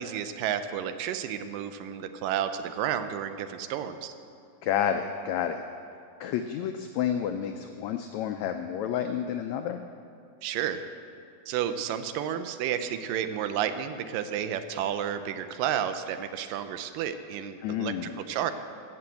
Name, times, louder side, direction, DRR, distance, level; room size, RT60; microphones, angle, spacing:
voice 1, 0.0-4.1 10.4-10.8 11.5-18.5, right 9 dB, 85° right, 10 dB, 2.3 m, -31 dB
voice 2, 4.6-5.6 6.2-9.8 17.6-18.2, left 9 dB, 90° left, 7 dB, 1.5 m, -30 dB
15.5 x 6.1 x 7.7 m, 2.6 s
omnidirectional pair, 3.8 m